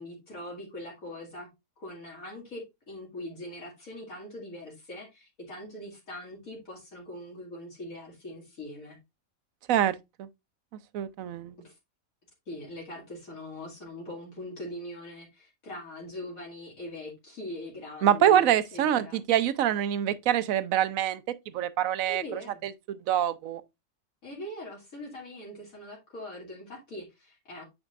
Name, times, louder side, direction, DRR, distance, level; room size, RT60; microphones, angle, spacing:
voice 1, 0.0-1.5 1.8-9.0 11.6-11.7 12.5-19.2 22.1-22.6 24.2-27.6, left 1 dB, 70° left, 2.6 m, -42 dB
voice 2, 9.7-10.3 10.9-11.5 18.0-21.2 21.5-22.2 22.6-23.6, right 10 dB, 75° right, 1.0 m, -25 dB
8.8 x 4.9 x 2.4 m
omnidirectional pair, 1.5 m